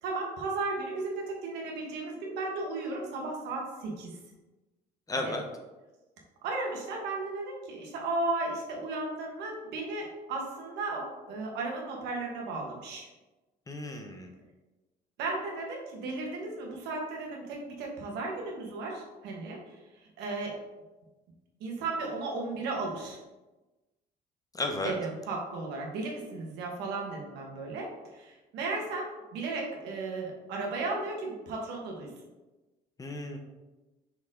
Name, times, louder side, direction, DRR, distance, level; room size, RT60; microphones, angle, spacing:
voice 1, 0.0-4.1 5.2-5.4 6.4-13.1 15.2-20.5 21.6-23.2 24.8-32.1, right 3 dB, 85° right, 0 dB, 1.5 m, -35 dB
voice 2, 5.1-5.4 13.7-14.3 24.5-24.9 33.0-33.4, left 2 dB, 20° left, 4 dB, 0.9 m, -33 dB
5.9 x 4.5 x 3.8 m, 1.1 s
cardioid pair, 110°, 17 cm